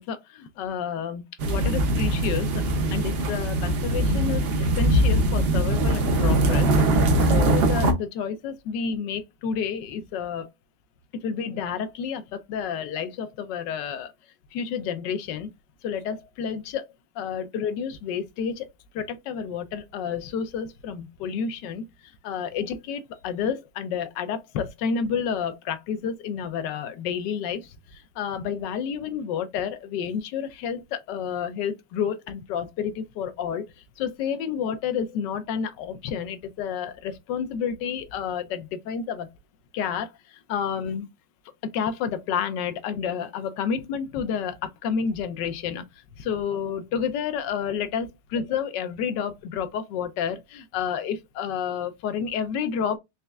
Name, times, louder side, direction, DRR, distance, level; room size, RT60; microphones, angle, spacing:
voice 1, 0.0-2.6 2.9-6.9 7.2-10.5 11.2-14.1 14.5-15.5 15.8-16.9 17.1-18.7 18.9-39.3 39.7-41.1 41.6-53.0, left 7 dB, 80° left, 1.2 m, -30 dB
sound 1, 1.4-7.9, right 1 dB, 80° right, 0.5 m, -21 dB
4.2 x 3.3 x 2.3 m
omnidirectional pair, 1.9 m